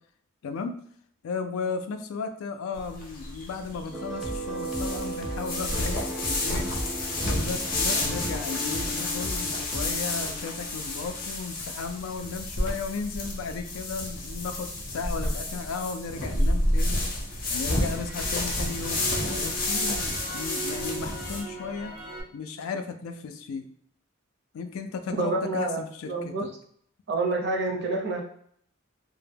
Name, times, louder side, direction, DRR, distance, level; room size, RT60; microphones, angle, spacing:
voice 1, 0.4-0.7 1.2-17.0 17.5-21.9 22.3-23.7 24.5-26.5, left 5 dB, 90° left, 7 dB, 0.3 m, -35 dB
sound 1, 2.7-21.4, left 1 dB, 45° left, 0.6 m, -30 dB
sound 2, 3.9-11.3, equal, ahead, 0.3 m, -35 dB
Crackle, 12.5-16.7 17.1-22.2, right 1 dB, 85° right, 0.9 m, -37 dB
voice 2, 25.1-25.8 26.1-26.4 27.1-28.2, right 2 dB, 55° right, 1 dB, 0.6 m, -27 dB
2.1 x 2.0 x 3.2 m, 0.64 s
head